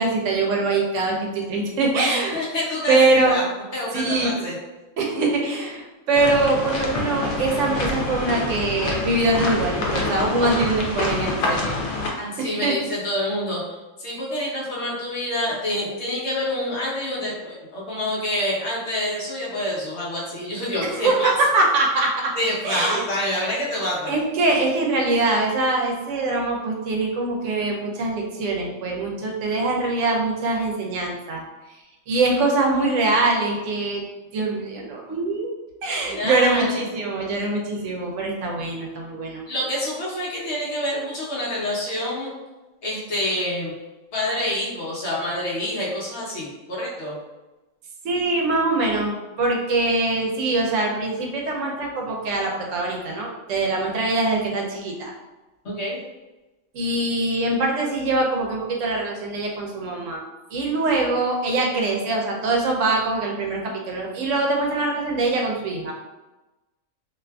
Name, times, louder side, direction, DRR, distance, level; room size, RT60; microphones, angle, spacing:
voice 1, 0.0-2.4 2.9-3.4 3.9-4.5 5.0-11.8 12.4-12.8 20.8-22.3 22.6-23.0 24.1-31.4 32.1-34.0 34.3-35.5 35.8-39.4 48.0-55.1 56.7-60.2 60.5-65.9, right 2 dB, 70° right, -1 dB, 0.9 m, -23 dB
voice 2, 2.0-3.4 3.7-4.6 12.2-13.6 14.0-21.3 22.3-24.1 36.1-36.9 39.5-42.3 42.8-43.7 44.1-47.2 55.6-56.0, left 1 dB, 60° left, -6 dB, 1.1 m, -27 dB
sound 1, 6.1-12.1, left 2 dB, 90° left, 1.0 m, -26 dB
2.6 x 2.4 x 2.2 m, 1.1 s
omnidirectional pair, 1.4 m